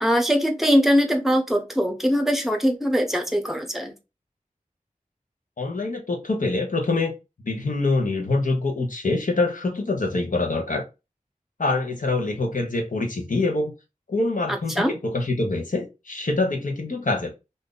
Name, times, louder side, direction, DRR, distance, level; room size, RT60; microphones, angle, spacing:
voice 1, 0.0-3.9 14.5-15.0, equal, ahead, 0.8 m, -22 dB
voice 2, 5.6-7.1 7.4-10.8 11.6-13.7 14.1-17.3, left 2 dB, 70° left, 1.0 m, -25 dB
2.7 x 2.6 x 3.7 m
wide cardioid pair, 65°, 14 cm